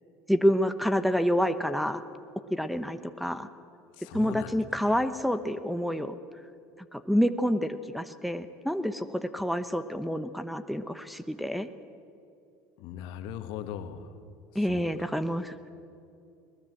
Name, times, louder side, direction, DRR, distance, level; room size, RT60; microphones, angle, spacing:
voice 1, 0.3-2.0 2.5-3.5 4.1-6.1 6.9-11.7 14.5-15.7, equal, ahead, 8 dB, 1.0 m, -28 dB
voice 2, 4.0-5.0 12.8-14.1 14.5-14.9, left 9 dB, 70° left, 8 dB, 1.7 m, -40 dB
21.0 x 20.0 x 7.9 m, 2.6 s
supercardioid pair, 95°, 9 cm